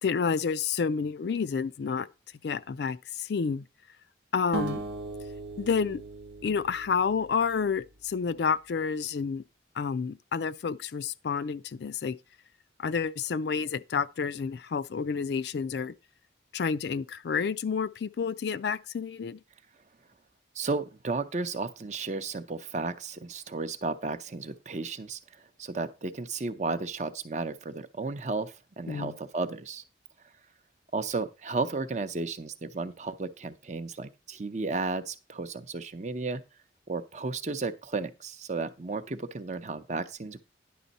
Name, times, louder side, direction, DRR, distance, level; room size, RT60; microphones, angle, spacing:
voice 1, 0.0-2.1 2.4-3.7 4.3-4.8 5.6-6.0 6.4-9.4 9.8-12.2 12.8-15.9 16.5-19.4 28.9-29.1, left 5 dB, 60° left, 0.4 m, -29 dB
sound 1, 4.5-7.7, right 3 dB, 65° right, 0.9 m, -38 dB
voice 2, 20.6-25.2 25.6-29.8 30.9-36.4 36.9-40.4, right 3 dB, 40° right, 0.6 m, -33 dB
10.0 x 6.1 x 4.0 m
head